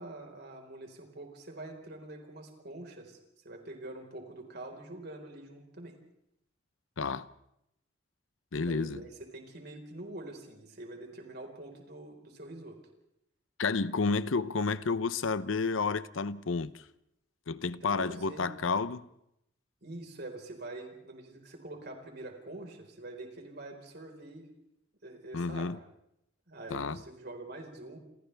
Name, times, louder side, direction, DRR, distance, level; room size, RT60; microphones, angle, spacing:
voice 1, 0.0-3.2 3.4-5.9 8.7-12.8 17.8-18.5 19.8-24.5 25.0-25.8 26.5-28.0, right 2 dB, 55° right, 4.7 m, -45 dB
voice 2, 7.0-7.3 8.5-9.0 13.6-16.8 17.5-19.1 25.3-25.8 26.7-27.0, left 4 dB, 90° left, 0.8 m, -31 dB
29.0 x 28.5 x 3.5 m
head